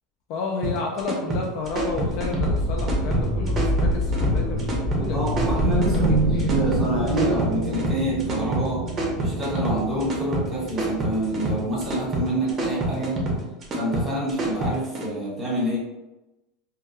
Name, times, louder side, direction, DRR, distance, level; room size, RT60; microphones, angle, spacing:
voice 1, 0.3-6.5, left 4 dB, 50° left, 1 dB, 0.3 m, -32 dB
sound 1, 0.6-15.1, right 1 dB, 25° right, 0.6 m, -28 dB
sound 2, 1.7-8.1, left 1 dB, 15° left, 0.6 m, -26 dB
voice 2, 5.1-8.8 9.2-13.2 13.7-15.8, right 1 dB, ahead, -7 dB, 1.2 m, -27 dB
sound 3, 5.6-12.2, right 3 dB, 80° right, 0.5 m, -28 dB
2.2 x 2.2 x 2.8 m, 1.0 s
supercardioid pair, 140°, 0 cm